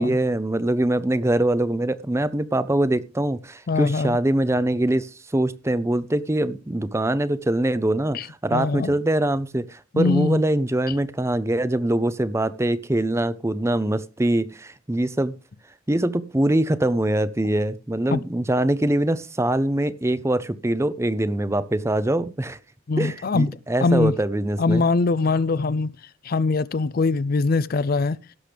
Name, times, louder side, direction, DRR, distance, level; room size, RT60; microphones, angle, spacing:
voice 1, 0.0-15.3 15.9-22.6 23.0-24.8, right 1 dB, 15° right, 0.5 m, -23 dB
voice 2, 3.7-4.2 8.1-8.9 9.9-10.4 18.1-18.2 22.9-24.1 24.6-25.9 26.2-28.2, left 3 dB, 45° left, 0.4 m, -22 dB
17.0 x 6.6 x 3.4 m
head